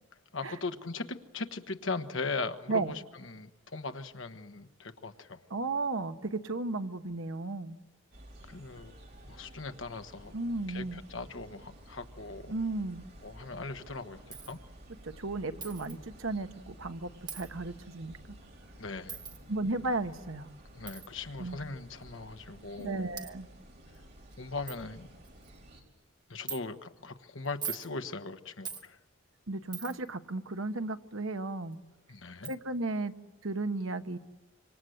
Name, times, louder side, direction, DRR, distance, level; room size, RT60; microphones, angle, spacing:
voice 1, 0.3-5.4 8.5-8.9 9.3-10.4 10.7-12.5 13.2-14.6 18.8-19.2 20.7-22.9 24.4-25.1 26.3-29.0 32.1-32.5, left 3 dB, 70° left, 1.3 m, -39 dB
voice 2, 5.5-7.8 10.3-11.0 12.5-13.0 15.0-18.2 19.5-20.5 21.4-21.6 22.8-23.5 29.5-31.8 32.4-33.1 33.4-34.2, right 2 dB, 80° right, 1.2 m, -34 dB
sound 1, 8.1-25.8, right 1 dB, 50° right, 4.4 m, -53 dB
Coin (dropping), 14.3-14.6 15.6-16.0 17.3-17.5 19.1-19.4 20.9-21.1 22.0-22.1 22.8-22.9 23.2-23.3 23.9-24.0 24.3-24.4 24.7-24.8 25.2-25.6 26.5-26.6 27.4-27.9 28.6-28.9 29.7-30.1 31.7-31.8 32.4-32.6, right 7 dB, 20° right, 1.4 m, -41 dB
26.5 x 25.5 x 7.9 m
head